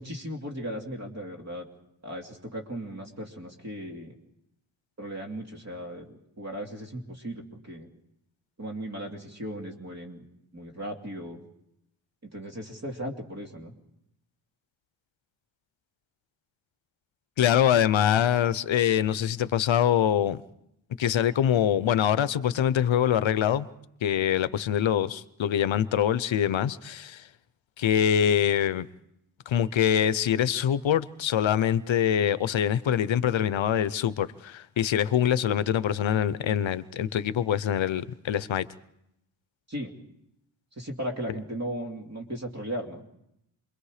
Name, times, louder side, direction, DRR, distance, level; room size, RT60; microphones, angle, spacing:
voice 1, 0.0-1.7 2.0-4.1 5.0-7.9 8.6-10.2 10.5-11.4 12.2-13.7 39.7-39.9 40.8-43.0, equal, 35° right, 2.7 m, -37 dB
voice 2, 17.4-20.4 21.0-23.7 24.0-27.3 27.8-28.9 29.5-38.7, left 9 dB, 80° left, 0.8 m, -24 dB
27.5 x 22.5 x 4.9 m
wide cardioid pair, 165°, 45 cm